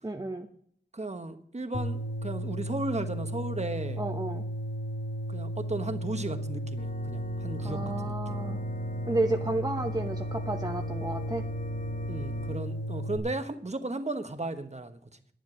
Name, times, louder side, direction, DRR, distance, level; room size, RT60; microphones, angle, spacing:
voice 1, 0.0-0.5 4.0-4.4 7.6-8.6 9.1-11.4, right 2 dB, 20° right, 4 dB, 0.9 m, -31 dB
voice 2, 0.9-4.0 5.3-8.1 8.5-8.6 12.1-15.0, right 2 dB, 40° right, 8 dB, 1.3 m, -35 dB
sound 1, 1.7-13.2, equal, 85° left, 2.0 m, -34 dB
Organ, 6.8-12.6, left 3 dB, 50° left, 1.5 m, -43 dB
10.5 x 10.0 x 6.3 m, 0.63 s
wide cardioid pair, 65°, 18 cm